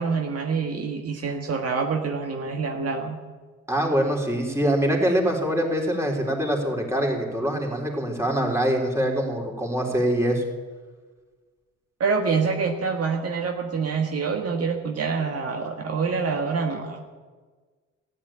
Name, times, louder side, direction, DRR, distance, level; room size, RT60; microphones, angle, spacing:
voice 1, 0.0-3.2 12.0-17.1, right 5 dB, 55° right, 3 dB, 1.5 m, -26 dB
voice 2, 3.7-10.4, right 1 dB, 10° right, 0 dB, 3.7 m, -24 dB
14.5 x 11.0 x 8.7 m, 1.4 s
cardioid pair, 90°, 30 cm